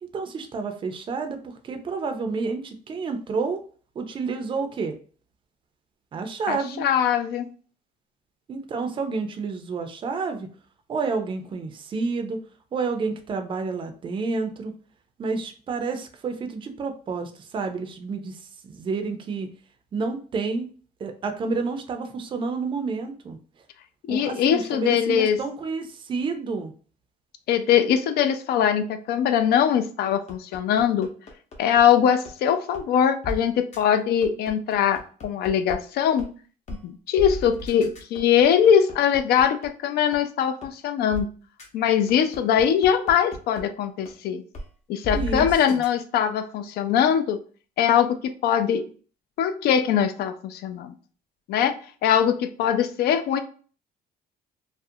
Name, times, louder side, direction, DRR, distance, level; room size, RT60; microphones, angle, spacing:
voice 1, 0.0-3.6 4.0-4.9 6.1-6.8 8.5-10.5 10.9-12.4 12.7-14.7 15.2-19.5 19.9-20.7 21.0-23.4 24.1-26.7 45.1-45.8, right 4 dB, 30° right, 6 dB, 0.4 m, -29 dB
voice 2, 6.5-7.5 24.1-25.4 27.5-31.1 31.6-36.3 36.8-41.3 41.7-44.4 44.9-47.4 47.8-48.8 49.4-50.9 51.5-53.4, left 9 dB, 70° left, 9 dB, 0.4 m, -22 dB
sound 1, 30.3-31.8 32.3-32.4 32.7-32.8 33.2-33.4 33.7-33.8 34.2-35.7 36.2-36.3 36.7-36.8 37.2-39.7 40.1-40.2 40.6-40.7 41.1-41.2 41.6-41.7 42.1-43.6 44.1-44.2 44.5-44.6 45.0-45.9, left 1 dB, 40° left, 0.7 m, -34 dB
2.4 x 2.0 x 2.6 m, 0.41 s
cardioid pair, 110°, 17 cm